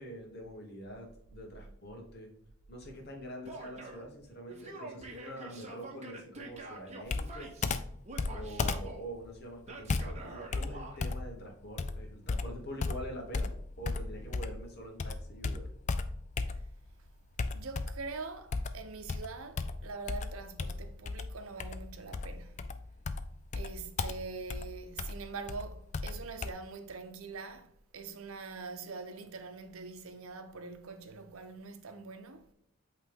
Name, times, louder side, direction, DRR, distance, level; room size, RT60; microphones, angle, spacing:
voice 1, 0.0-2.3 2.7-7.5 8.3-13.5 13.8-15.7, equal, 50° left, 1.5 m, -45 dB
Male speech man speaking / Yell, 3.4-4.1 4.5-7.8 8.0-9.0 9.6-11.0, right 2 dB, 30° right, 1.0 m, -46 dB
Computer keyboard, 7.1-14.7 15.0-16.9 17.4-18.1 18.5-26.5, left 3 dB, 35° left, 0.3 m, -36 dB
voice 2, 17.5-22.6 23.5-32.5, right 4 dB, 80° right, 0.7 m, -44 dB
8.3 x 3.3 x 3.5 m
head